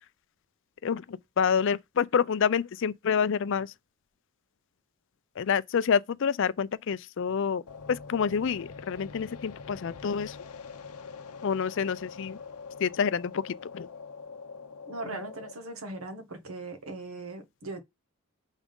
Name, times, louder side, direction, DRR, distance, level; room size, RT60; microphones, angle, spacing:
voice 1, 0.8-3.7 5.4-7.6 7.9-10.4 11.4-12.4 12.8-13.9, left 6 dB, 55° left, 0.4 m, -28 dB
sound 1, 7.7-15.5, left 5 dB, 90° left, 0.7 m, -44 dB
voice 2, 14.9-17.8, right 2 dB, 70° right, 1.4 m, -39 dB
7.2 x 3.7 x 5.2 m
head